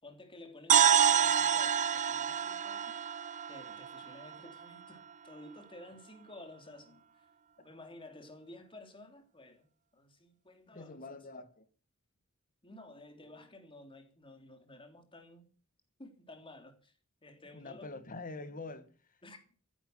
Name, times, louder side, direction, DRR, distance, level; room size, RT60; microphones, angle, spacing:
voice 1, 0.0-3.2 3.5-7.3 7.6-11.2 12.6-15.5 16.0-16.9 17.2-18.0 19.2-19.6, left 1 dB, 25° left, 3.2 m, -53 dB
sound 1, 0.7-4.6, right 8 dB, 35° right, 0.6 m, -28 dB
voice 2, 10.7-11.7 17.5-19.2, left 3 dB, 40° left, 1.7 m, -45 dB
15.0 x 10.5 x 7.9 m
head